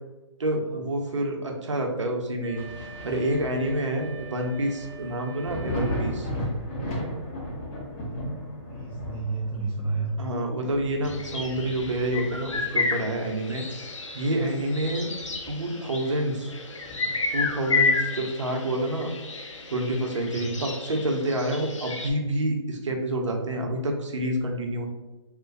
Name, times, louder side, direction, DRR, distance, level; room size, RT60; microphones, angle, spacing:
voice 1, 0.4-2.6 3.0-6.3 10.2-15.1 15.5-16.5 17.3-19.1 19.7-24.9, right 1 dB, 75° right, 2 dB, 0.7 m, -28 dB
Wind instrument woodwind instrument, 2.4-6.6, right 7 dB, 30° right, 0.3 m, -45 dB
Thunder, 2.5-13.9 14.3-15.8 16.2-16.3 16.8-18.1 19.5-19.6, equal, 30° left, 0.9 m, -36 dB
voice 2, 7.9-10.1 20.3-20.6, right 3 dB, 10° right, -7 dB, 1.0 m, -32 dB
sound 1, 11.0-22.1, left 4 dB, 85° left, 0.5 m, -31 dB
2.5 x 2.2 x 3.9 m, 1.1 s
figure-of-eight pair, 135°, 16 cm